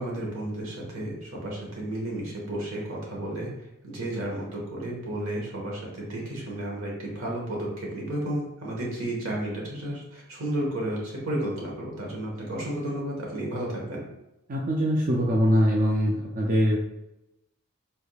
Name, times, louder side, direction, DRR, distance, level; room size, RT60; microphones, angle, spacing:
voice 1, 0.0-3.5 3.8-14.0, right 1 dB, 80° right, -2 dB, 1.2 m, -32 dB
voice 2, 14.5-16.8, equal, 40° right, -3 dB, 0.4 m, -23 dB
4.3 x 3.4 x 2.3 m, 0.89 s
head